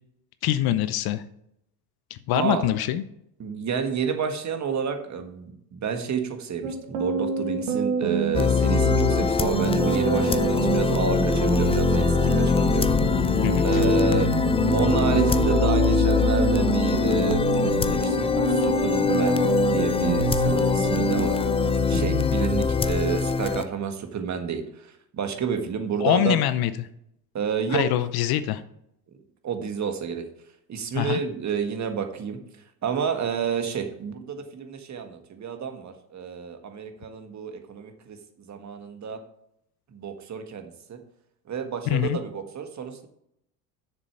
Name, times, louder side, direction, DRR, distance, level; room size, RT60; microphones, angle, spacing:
voice 1, 0.4-1.2 2.1-3.0 13.4-13.8 26.0-26.7 27.7-28.6 30.9-31.2 41.9-42.2, left 12 dB, 50° left, 13 dB, 0.7 m, -24 dB
voice 2, 2.3-2.7 3.4-12.9 13.6-14.3 14.7-26.4 27.3-27.9 29.4-30.2 30.7-32.4 32.8-39.2 39.9-41.0 41.5-43.1, right 6 dB, 35° right, 6 dB, 1.6 m, -29 dB
sound 1, 6.6-22.3, right 3 dB, 70° right, 1.9 m, -27 dB
sound 2, 8.3-23.6, left 5 dB, 10° left, 0.5 m, -23 dB
6.9 x 6.9 x 5.9 m, 0.77 s
hypercardioid pair, 75°, 49 cm